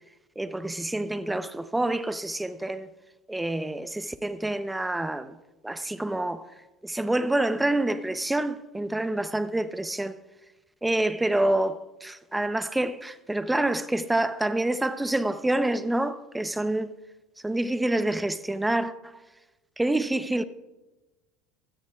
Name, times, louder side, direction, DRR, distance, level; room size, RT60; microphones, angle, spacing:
voice 1, 0.4-2.9 3.3-5.4 5.6-6.4 6.8-10.1 10.8-16.9 17.4-19.1 19.8-20.4, right 1 dB, 10° right, 0.7 m, -27 dB
16.5 x 13.0 x 2.4 m
hypercardioid pair, 85°, 0 cm